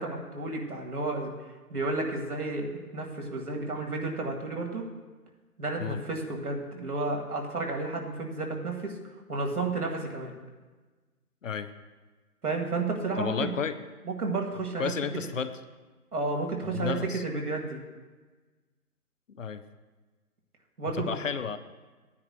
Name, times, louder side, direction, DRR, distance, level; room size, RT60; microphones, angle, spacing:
voice 1, 0.0-1.3 1.7-4.8 5.6-9.0 9.3-10.3 12.4-13.5 14.0-14.9 16.1-17.8 20.8-21.1, right 3 dB, 75° right, 1 dB, 2.0 m, -32 dB
voice 2, 13.2-13.8 14.8-15.5 16.7-17.2 19.4-19.6 20.9-21.6, left 6 dB, 55° left, 11 dB, 0.6 m, -31 dB
15.5 x 9.7 x 2.3 m, 1.3 s
figure-of-eight pair, 140°, 45 cm